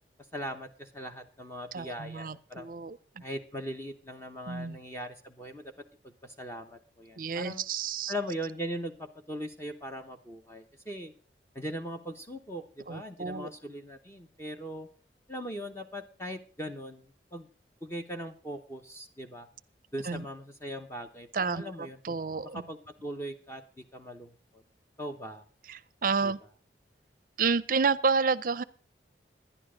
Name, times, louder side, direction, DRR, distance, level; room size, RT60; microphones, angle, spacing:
voice 1, 0.3-2.7 3.2-5.7 6.0-7.6 8.1-11.1 11.5-14.9 15.3-17.5 17.8-19.5 19.9-22.2 22.4-24.6 25.0-25.4 26.2-26.3, equal, 15° left, 5 dB, 0.8 m, -40 dB
voice 2, 1.7-3.0 4.5-4.8 7.2-8.1 12.9-13.5 20.0-20.2 21.3-22.6 25.7-26.4 27.4-28.6, right 5 dB, 50° right, 17 dB, 0.5 m, -30 dB
11.0 x 11.0 x 5.0 m, 0.39 s
head